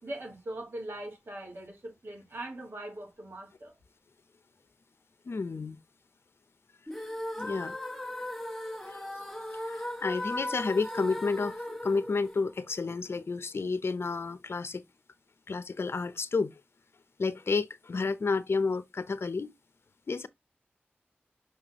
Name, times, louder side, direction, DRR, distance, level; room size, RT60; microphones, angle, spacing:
voice 1, 0.0-3.7, right 1 dB, 70° right, 3.8 m, -41 dB
voice 2, 5.2-5.8 7.4-7.8 8.8-14.8 15.5-16.6 17.2-19.5 20.1-20.3, left 4 dB, 80° left, 0.6 m, -31 dB
sound 1, 6.9-13.0, left 1 dB, 5° left, 1.6 m, -37 dB
5.9 x 5.3 x 3.0 m
wide cardioid pair, 45°, 4 cm